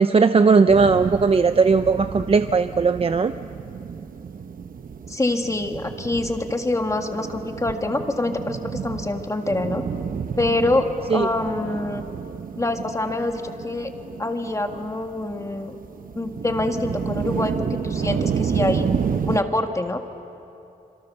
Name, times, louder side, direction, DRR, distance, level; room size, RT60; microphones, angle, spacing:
voice 1, 0.0-3.3 11.1-11.3, right 4 dB, 40° right, 10 dB, 0.6 m, -17 dB
sound 1, 0.7-19.4, right 6 dB, 65° right, 0.9 m, -31 dB
voice 2, 5.1-9.8 10.4-12.1 12.6-13.9 14.2-15.8 16.1-18.9 19.3-20.0, left 2 dB, 20° left, 5 dB, 1.8 m, -25 dB
28.0 x 27.0 x 6.9 m, 2.9 s
wide cardioid pair, 130°, 16 cm